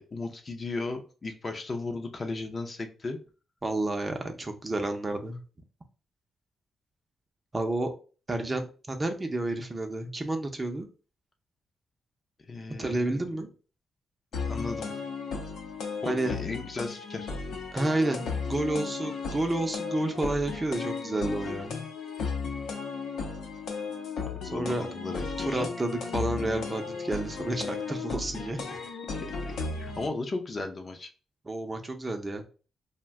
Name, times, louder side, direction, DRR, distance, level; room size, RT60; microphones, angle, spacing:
voice 1, 0.0-3.2 12.5-13.3 14.4-15.0 16.0-17.3 24.4-25.5 29.2-29.3 29.8-31.1, left 3 dB, 35° left, 4 dB, 0.5 m, -35 dB
voice 2, 3.6-5.4 7.5-7.9 8.3-10.9 12.8-13.5 16.0-16.3 17.7-18.2 18.5-21.8 24.5-24.8 25.5-28.7 31.4-32.4, right 2 dB, 25° right, 4 dB, 0.5 m, -30 dB
sound 1, 14.3-30.1, left 5 dB, 85° left, 0.6 m, -35 dB
2.5 x 2.1 x 3.5 m, 0.36 s
cardioid pair, 90°, 0 cm